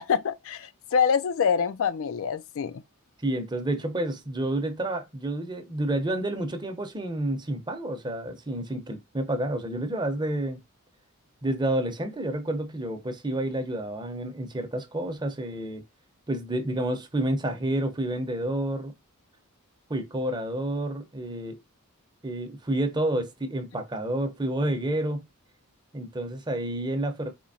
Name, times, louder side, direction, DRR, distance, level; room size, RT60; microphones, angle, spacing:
voice 1, 0.0-2.7, left 6 dB, 65° left, 0.4 m, -25 dB
voice 2, 3.2-10.6 11.4-15.8 16.3-18.9 19.9-21.6 22.2-25.3 25.9-27.3, right 1 dB, 20° right, 0.7 m, -29 dB
4.4 x 2.8 x 2.7 m
head